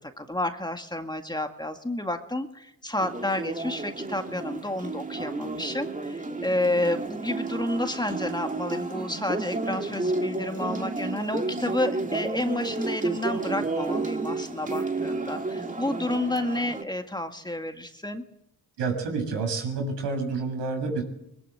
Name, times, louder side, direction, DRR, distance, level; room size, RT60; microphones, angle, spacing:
voice 1, 0.0-18.2, left 1 dB, 10° left, 6 dB, 1.9 m, -30 dB
sound 1, 3.0-16.8, right 3 dB, 20° right, 2.2 m, -31 dB
voice 2, 18.8-21.0, right 4 dB, 85° right, 4 dB, 7.1 m, -29 dB
21.5 x 19.0 x 8.0 m, 0.82 s
cardioid pair, 80°, 41 cm